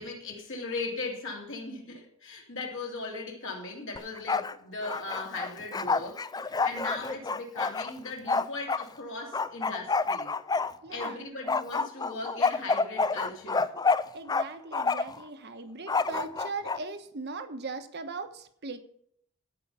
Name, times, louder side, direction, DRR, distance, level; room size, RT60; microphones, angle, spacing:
voice 1, 0.0-10.3 10.9-13.7, left 3 dB, 60° left, 1 dB, 2.8 m, -38 dB
Bark, 4.0-4.5 4.8-8.8 9.3-11.1 11.5-14.4 14.7-15.2 15.9-16.8, left 4 dB, 20° left, 0.4 m, -28 dB
voice 2, 10.8-11.2 14.1-18.8, right 3 dB, 50° right, 8 dB, 1.2 m, -39 dB
16.5 x 5.5 x 5.5 m, 0.66 s
head